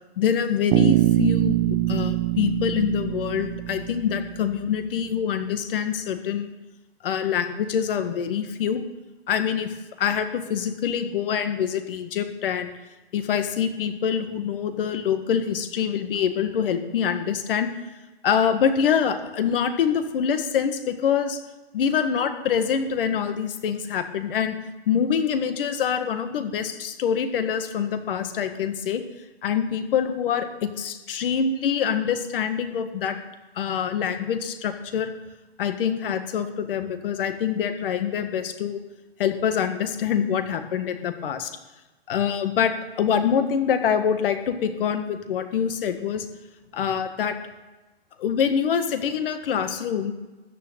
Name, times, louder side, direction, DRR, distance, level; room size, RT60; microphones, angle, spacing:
voice 1, 0.2-6.5 7.0-8.8 9.3-12.7 13.1-17.7 18.2-21.4 21.7-24.6 24.9-29.0 29.4-30.5 30.8-33.2 33.6-35.1 35.6-38.8 39.2-41.6 42.1-46.3 46.7-47.4 48.2-50.1, left 7 dB, 60° left, 8 dB, 1.8 m, -25 dB
Bass guitar, 0.7-4.6, right 16 dB, 25° right, 0.5 m, -23 dB
13.5 x 6.5 x 9.2 m, 1.1 s
hypercardioid pair, 135°, 31 cm